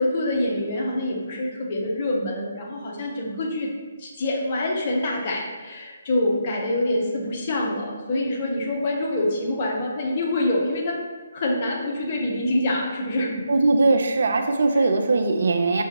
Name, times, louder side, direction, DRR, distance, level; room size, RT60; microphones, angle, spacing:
voice 1, 0.0-3.7 4.0-11.0 11.3-13.3, left 1 dB, 40° left, -1 dB, 0.8 m, -25 dB
voice 2, 13.5-15.8, right 3 dB, 60° right, 5 dB, 0.4 m, -20 dB
5.9 x 2.3 x 3.0 m, 1.4 s
figure-of-eight pair, 140°, 0 cm